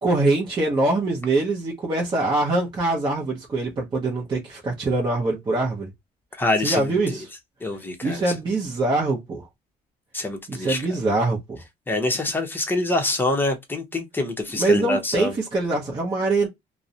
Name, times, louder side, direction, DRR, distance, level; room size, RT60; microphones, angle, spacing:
voice 1, 0.0-5.9 6.6-7.3 8.0-9.5 10.5-11.6 14.5-16.5, right 2 dB, 25° right, 0.7 m, -23 dB
voice 2, 6.4-7.0 7.6-8.3 10.1-11.0 11.9-15.4, left 2 dB, 10° left, 0.7 m, -25 dB
2.3 x 2.0 x 2.7 m
cardioid pair, 110°, 17 cm